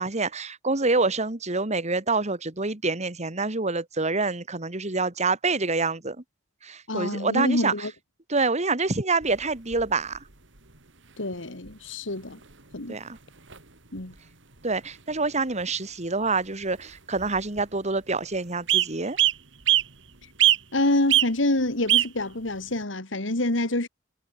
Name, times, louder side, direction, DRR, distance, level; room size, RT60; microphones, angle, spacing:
voice 1, 0.0-6.2 6.6-7.7 8.3-10.2 12.9-13.2 14.6-19.2, right 3 dB, 35° right, 2.2 m, -26 dB
voice 2, 6.9-7.9 11.2-12.4 12.7-13.0 13.9-14.1 20.7-23.9, left 1 dB, 70° left, 2.5 m, -26 dB
sound 1, 9.2-10.2 11.3-11.4 11.7-11.8 12.4-12.7 13.0-13.1 13.4-13.6 14.0-14.2 15.1-15.2 15.6-15.7 16.8-16.9 17.2-17.6 18.1-18.2 18.7-18.9 19.2-19.9 20.4-20.8 21.1-21.3 21.9-22.1 22.8-22.9, right 13 dB, 70° right, 3.2 m, -22 dB
head